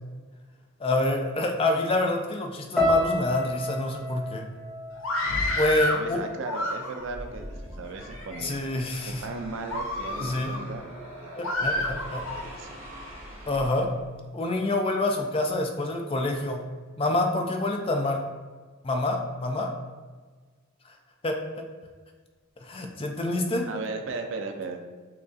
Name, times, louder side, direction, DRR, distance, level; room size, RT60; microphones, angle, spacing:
voice 1, 0.8-4.5 5.6-6.2 8.4-9.2 10.2-10.5 11.3-12.2 13.5-13.9 14.3-16.6 17.0-18.3 18.8-19.7 21.2-21.7 22.6-23.7, left 2 dB, 25° left, 3 dB, 0.4 m, -27 dB
sound 1, 2.8-7.0 7.2-8.0 8.6-8.8, left 1 dB, 5° left, 0.7 m, -32 dB
Screaming, 4.9-6.0 6.4-7.2 7.9-8.4 9.0-9.1 9.6-10.6 11.4-12.4, left 1 dB, 70° left, 0.6 m, -29 dB
voice 2, 5.9-8.6 9.1-10.9 11.2-11.4 11.8-11.9 12.3-13.1 23.7-24.9, right 3 dB, 60° right, 4 dB, 0.4 m, -36 dB
sound 2, 7.0-14.2, equal, 30° right, 1.4 m, -43 dB
6.1 x 2.3 x 2.5 m, 1.4 s
head